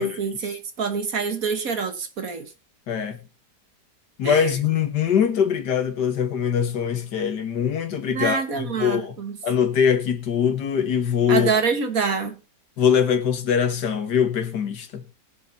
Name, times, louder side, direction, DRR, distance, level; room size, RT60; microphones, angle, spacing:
voice 1, 0.0-2.5 4.2-4.5 8.1-9.4 11.3-12.4, right 5 dB, 55° right, 1.8 m, -26 dB
voice 2, 2.9-3.2 4.2-8.4 8.8-9.2 9.4-11.5 12.8-15.1, left 8 dB, 70° left, 2.0 m, -22 dB
21.0 x 7.2 x 2.8 m
omnidirectional pair, 1.9 m